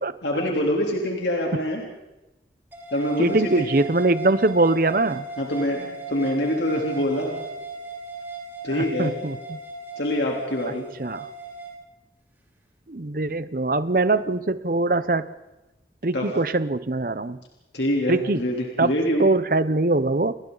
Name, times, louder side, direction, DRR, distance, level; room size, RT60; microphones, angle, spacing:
voice 1, 0.2-1.8 2.9-3.7 5.4-7.4 8.6-9.1 10.0-10.9 16.1-16.2 17.7-19.3, equal, 85° left, -1 dB, 3.4 m, -25 dB
sound 1, 2.7-11.7, right 3 dB, 10° right, 3.7 m, -37 dB
voice 2, 3.2-5.2 8.7-9.6 11.0-11.3 12.9-15.3 16.0-17.4 18.1-18.4 18.8-18.9 19.2-20.3, right 2 dB, 50° right, 14 dB, 0.8 m, -22 dB
29.5 x 22.5 x 4.0 m, 1.0 s
head